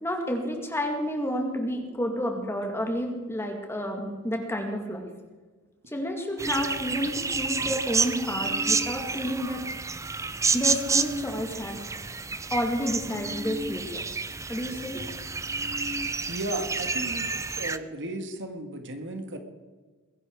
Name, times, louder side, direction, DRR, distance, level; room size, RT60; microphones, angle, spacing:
voice 1, 0.0-5.1 5.9-9.6 10.5-11.8 12.5-14.0 14.5-15.1, equal, 10° left, 3 dB, 2.1 m, -30 dB
sound 1, 6.4-17.8, right 4 dB, 15° right, 0.5 m, -30 dB
voice 2, 16.3-17.3 17.6-19.4, right 1 dB, 55° right, 6 dB, 1.8 m, -34 dB
21.5 x 11.0 x 4.7 m, 1.4 s
head